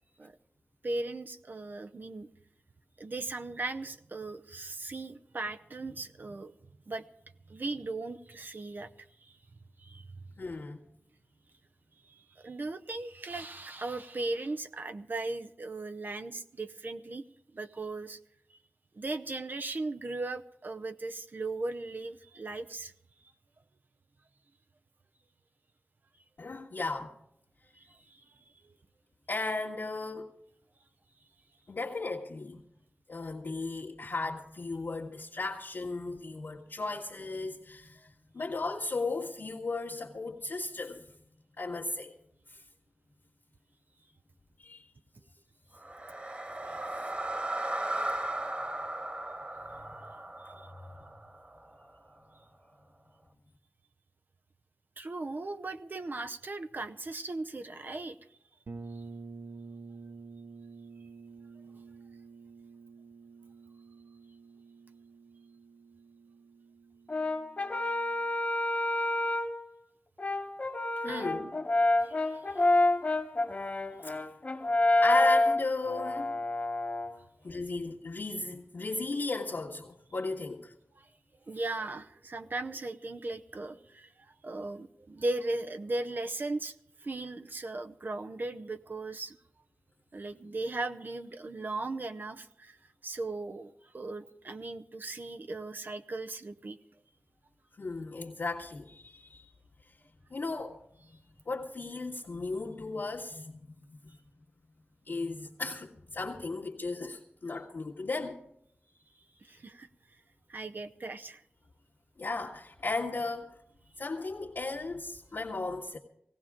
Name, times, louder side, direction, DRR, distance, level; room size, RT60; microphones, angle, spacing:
voice 1, 0.8-2.3 3.0-6.5 6.9-7.0 7.5-8.9 9.2-9.4 9.8-10.2 12.1-17.2 17.5-18.2 18.9-22.9 27.8-28.2 28.6-28.7 50.4-50.7 55.0-58.3 71.1-71.6 72.0-72.7 80.9-81.1 81.5-86.7 87.0-89.4 90.1-92.8 93.0-96.8 109.4-109.9 110.5-111.4, right 2 dB, 55° right, 0.7 m, -38 dB
voice 2, 10.4-10.8 26.4-27.1 29.3-30.4 31.7-32.6 33.1-38.1 38.3-41.0 41.6-42.2 42.5-42.6 44.6-44.9 49.6-49.9 71.0-71.4 74.0-74.2 75.0-76.3 77.4-80.7 97.8-99.5 100.3-100.8 101.5-104.0 105.1-108.4 112.2-113.5 114.0-116.0, left 3 dB, 70° left, 1.8 m, -36 dB
sound 1, 45.8-51.9, right 1 dB, 30° right, 1.8 m, -36 dB
sound 2, 58.7-68.3, right 4 dB, 90° right, 1.3 m, -49 dB
Brass instrument, 67.1-69.6 70.2-77.2, left 2 dB, 35° left, 1.2 m, -28 dB
18.5 x 17.0 x 3.7 m
wide cardioid pair, 100°, 4 cm